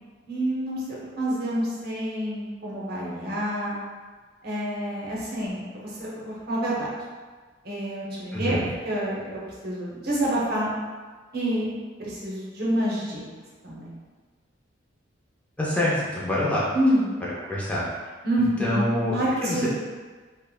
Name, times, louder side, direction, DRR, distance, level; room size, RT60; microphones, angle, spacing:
voice 1, 0.3-3.8 4.4-6.9 7.6-8.6 8.8-10.7 11.3-11.7 12.0-13.2 13.6-13.8 16.7-17.1 18.2-19.7, right 1 dB, 55° right, -5 dB, 0.8 m, -27 dB
voice 2, 8.3-8.7 15.6-16.6 17.4-17.8 18.4-19.6, left 1 dB, 5° left, -7 dB, 0.4 m, -26 dB
3.5 x 2.1 x 2.3 m, 1.4 s
head